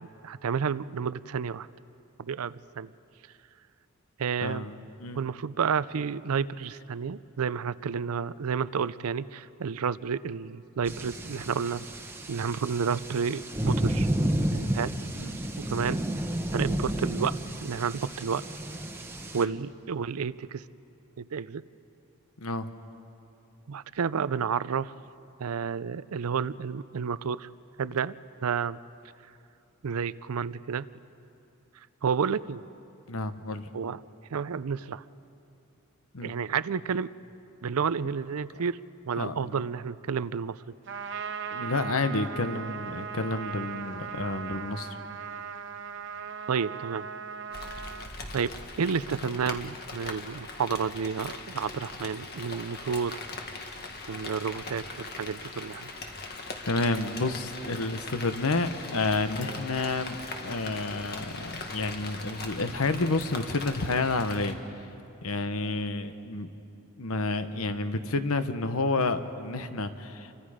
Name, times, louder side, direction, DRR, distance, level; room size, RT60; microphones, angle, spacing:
voice 1, 0.0-1.7 2.3-2.9 4.2-4.7 5.2-11.8 12.3-14.1 14.5-14.9 15.7-16.0 16.5-18.4 19.3-20.6 21.2-21.6 23.7-24.9 25.4-27.5 27.8-28.2 28.4-28.8 29.8-30.9 32.0-32.6 33.7-34.0 34.3-35.0 36.2-37.1 37.6-38.8 39.1-40.6 46.5-47.1 48.3-53.2 54.1-55.9, right 6 dB, 75° right, 17 dB, 0.5 m, -30 dB
voice 2, 4.4-5.2 15.1-15.3 19.3-19.5 22.4-22.7 33.1-33.7 36.1-36.3 38.5-38.6 39.2-39.6 41.5-45.0 56.7-64.6 65.2-66.5 67.0-70.3, left 3 dB, 70° left, 10 dB, 1.0 m, -30 dB
sound 1, 10.9-19.4, right 1 dB, 10° right, 1.1 m, -31 dB
Trumpet, 40.9-48.1, right 6 dB, 55° right, 0.9 m, -38 dB
Rain, 47.5-64.5, left 3 dB, 45° left, 1.7 m, -40 dB
29.0 x 24.0 x 5.0 m, 2.7 s
head